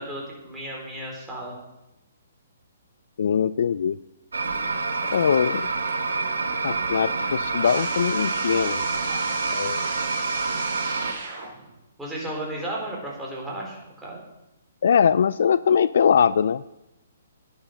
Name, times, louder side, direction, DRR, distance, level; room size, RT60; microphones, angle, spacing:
voice 1, 0.0-1.6 12.0-14.2, right 1 dB, 5° right, -4 dB, 4.2 m, -34 dB
voice 2, 3.2-4.0 5.1-5.7 6.6-8.8 9.5-9.8 14.8-16.7, left 7 dB, 65° left, 18 dB, 0.3 m, -21 dB
sound 1, 4.3-11.1, right 3 dB, 85° right, 1.4 m, -27 dB
sound 2, 4.8-5.6 6.0-11.8, right 4 dB, 45° right, 4.6 m, -37 dB
10.5 x 10.0 x 6.4 m, 0.93 s
hypercardioid pair, 145°, 0 cm